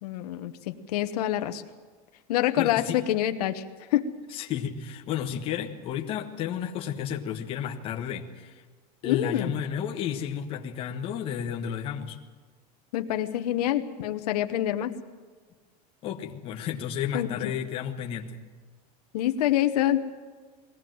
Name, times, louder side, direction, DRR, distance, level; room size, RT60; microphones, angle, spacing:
voice 1, 0.0-1.6 2.3-3.6 3.9-4.1 9.0-9.5 12.9-14.9 17.1-17.5 19.1-20.0, left 12 dB, 80° left, 7 dB, 1.2 m, -26 dB
voice 2, 2.6-3.0 4.3-8.6 9.0-12.2 16.0-18.4, left 9 dB, 25° left, 3 dB, 1.3 m, -32 dB
21.0 x 17.0 x 7.8 m, 1.5 s
supercardioid pair, 175°, 20 cm